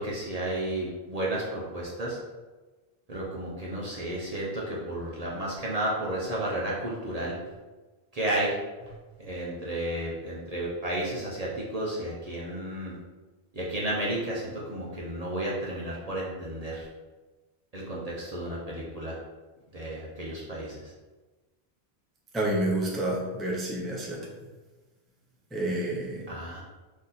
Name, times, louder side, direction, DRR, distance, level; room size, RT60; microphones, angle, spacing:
voice 1, 0.0-2.2 3.1-7.4 8.1-8.6 8.8-8.9 9.2-13.0 13.5-16.9 17.7-19.2 19.7-20.9 26.3-26.6, right 1 dB, 40° right, -5 dB, 0.8 m, -32 dB
voice 2, 22.3-24.2 25.5-26.3, right 1 dB, ahead, -4 dB, 0.7 m, -29 dB
4.1 x 3.1 x 4.0 m, 1.2 s
omnidirectional pair, 1.1 m